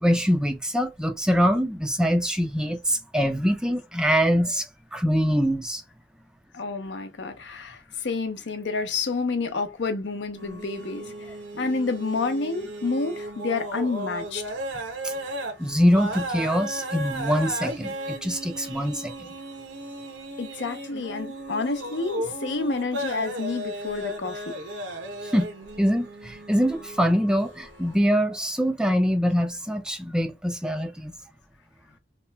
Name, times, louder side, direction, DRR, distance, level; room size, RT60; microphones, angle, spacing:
voice 1, 0.0-5.8 15.0-15.1 15.6-19.3 25.3-25.5 25.8-31.1, equal, 5° right, 0.3 m, -24 dB
voice 2, 6.5-11.1 11.6-14.5 20.4-24.6, left 3 dB, 75° left, 0.6 m, -29 dB
sound 1, 10.4-28.0, right 1 dB, 85° right, 0.7 m, -35 dB
2.9 x 2.2 x 3.2 m
head